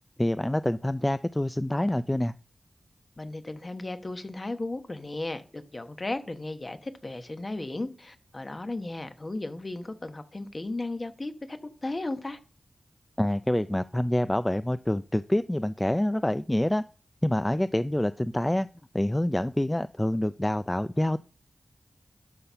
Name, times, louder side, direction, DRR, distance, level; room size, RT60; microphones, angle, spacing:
voice 1, 0.2-2.3 13.2-16.8 17.2-18.7 18.9-21.2, left 1 dB, 15° left, 0.3 m, -26 dB
voice 2, 3.2-12.4, left 2 dB, 35° left, 1.1 m, -35 dB
12.0 x 4.3 x 5.6 m
wide cardioid pair, 65°, 0 cm